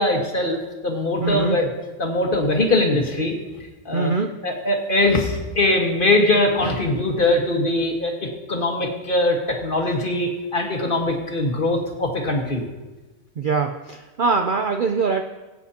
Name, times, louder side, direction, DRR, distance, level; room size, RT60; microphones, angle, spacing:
voice 1, 0.0-1.7 2.0-3.3 3.8-4.1 4.4-12.6, left 2 dB, 40° left, 1 dB, 1.6 m, -21 dB
voice 2, 1.2-1.6 3.9-4.3 13.4-15.2, right 4 dB, 55° right, 4 dB, 0.6 m, -22 dB
21.0 x 8.5 x 2.9 m, 1.2 s
omnidirectional pair, 1.4 m